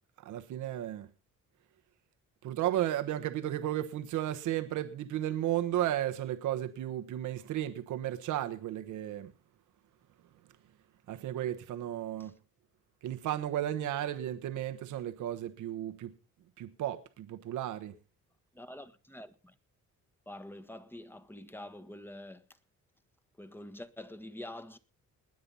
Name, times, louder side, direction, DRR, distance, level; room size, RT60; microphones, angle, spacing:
voice 1, 0.2-1.1 2.4-9.3 11.1-12.3 13.0-16.1 16.6-17.9, right 12 dB, 85° right, 1.2 m, -34 dB
voice 2, 18.5-19.6 20.2-22.4 23.4-24.8, left 1 dB, 5° left, 1.5 m, -46 dB
20.5 x 7.8 x 5.5 m
cardioid pair, 90°, 30 cm